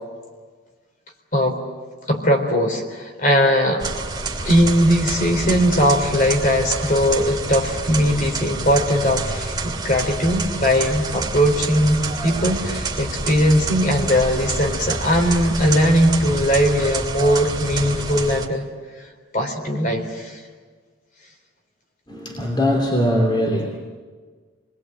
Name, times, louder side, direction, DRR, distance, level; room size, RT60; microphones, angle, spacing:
voice 1, 2.1-3.8 4.4-18.6 19.3-20.4, equal, 40° left, 4 dB, 4.0 m, -19 dB
sound 1, 3.8-18.5, right 3 dB, 20° right, 2.6 m, -28 dB
voice 2, 22.1-23.8, equal, 20° left, 0 dB, 2.9 m, -21 dB
29.5 x 21.0 x 8.9 m, 1.5 s
head